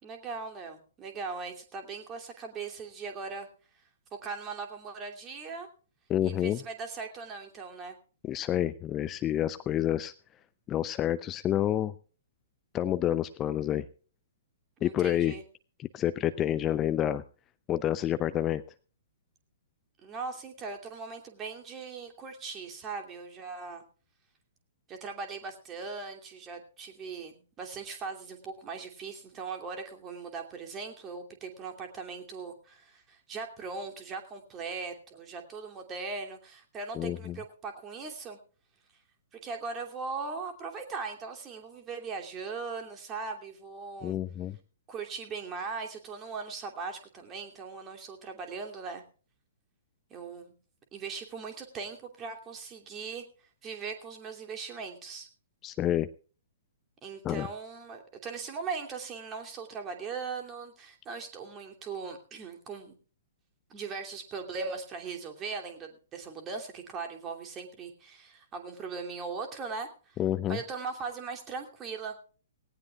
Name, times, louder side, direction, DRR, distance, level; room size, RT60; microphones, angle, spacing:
voice 1, 0.0-3.5 4.1-5.7 6.2-8.0 14.8-15.4 20.0-23.8 24.9-38.4 39.3-44.2 44.9-49.0 50.1-50.5 50.9-53.2 53.6-55.3 57.0-63.0 63.7-70.2 70.5-72.2, right 4 dB, 20° right, 2 dB, 2.7 m, -39 dB
voice 2, 6.1-6.6 8.2-10.1 10.7-11.9 12.7-13.8 14.8-15.3 15.8-17.2 17.7-18.6 37.0-37.4 44.0-44.6 55.6-56.1 57.2-57.5 70.2-70.6, left 11 dB, 20° left, 14 dB, 0.5 m, -28 dB
18.5 x 18.0 x 2.4 m, 0.40 s
figure-of-eight pair, 115°, 0 cm